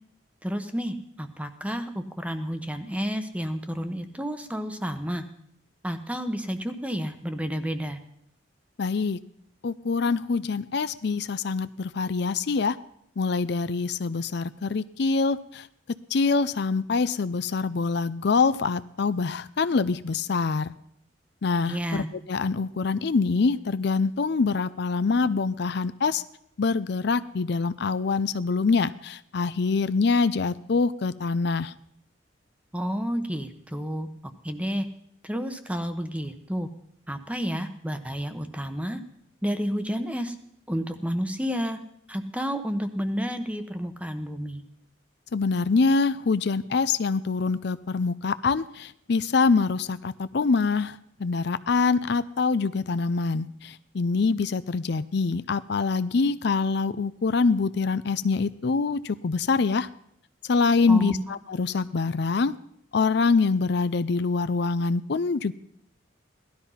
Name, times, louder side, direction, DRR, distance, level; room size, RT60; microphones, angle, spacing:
voice 1, 0.4-5.2 5.8-8.0 21.7-22.1 32.7-34.1 34.4-34.8 35.2-36.7 37.1-39.0 39.4-40.3 40.7-41.8 42.1-44.6 60.9-61.2, equal, 5° right, 8 dB, 1.0 m, -30 dB
voice 2, 8.8-9.2 9.6-12.8 13.2-15.7 16.1-20.7 21.4-26.2 26.6-31.7 45.3-59.9 60.5-62.5 62.9-65.5, left 4 dB, 60° left, 14 dB, 0.5 m, -25 dB
17.5 x 12.5 x 5.7 m, 0.72 s
head